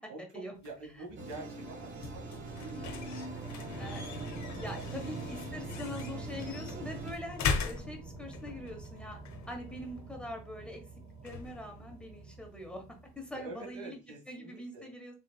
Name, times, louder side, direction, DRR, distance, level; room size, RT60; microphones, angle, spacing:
voice 1, 0.1-4.2 4.5-5.3 13.3-14.9, right 3 dB, 80° right, 1 dB, 1.7 m, -48 dB
sound 1, 0.6-13.3, left 5 dB, 65° left, 0.9 m, -42 dB
sound 2, 1.1-13.6, right 2 dB, 15° right, 1.0 m, -47 dB
sound 3, 1.2-7.1, right 2 dB, 40° right, 1.0 m, -43 dB
voice 2, 3.7-9.2 9.5-10.8 11.2-14.0 14.3-15.1, left 1 dB, 5° left, 3 dB, 1.2 m, -43 dB
4.0 x 3.8 x 2.2 m, 0.30 s
cardioid pair, 90°, 30 cm